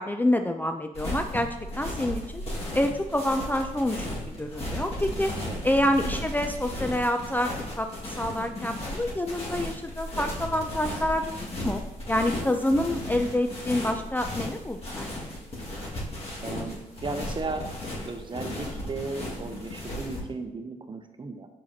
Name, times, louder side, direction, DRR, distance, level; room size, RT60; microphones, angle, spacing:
voice 1, 0.0-1.5 1.8-2.4 2.7-4.1 4.4-5.3 5.6-7.5 7.8-7.9 8.2-11.8 12.1-15.1, left 1 dB, 10° left, 6 dB, 0.4 m, -27 dB
sound 1, 0.9-20.2, left 1 dB, 45° left, 2.0 m, -35 dB
voice 2, 16.4-17.7 18.1-21.5, right 3 dB, 35° right, 7 dB, 0.8 m, -35 dB
7.2 x 4.8 x 2.9 m, 0.93 s
supercardioid pair, 60°, 15 cm